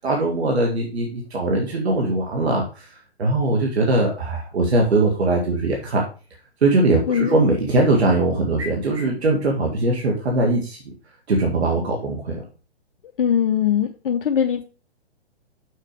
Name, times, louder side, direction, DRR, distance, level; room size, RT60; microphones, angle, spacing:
voice 1, 0.0-2.9 3.2-6.0 6.6-10.8 11.3-12.4, right 2 dB, 75° right, 0 dB, 2.0 m, -21 dB
voice 2, 7.1-7.5 13.2-14.6, left 8 dB, 55° left, 6 dB, 0.7 m, -21 dB
6.5 x 5.9 x 4.8 m, 0.35 s
hypercardioid pair, 140°, 32 cm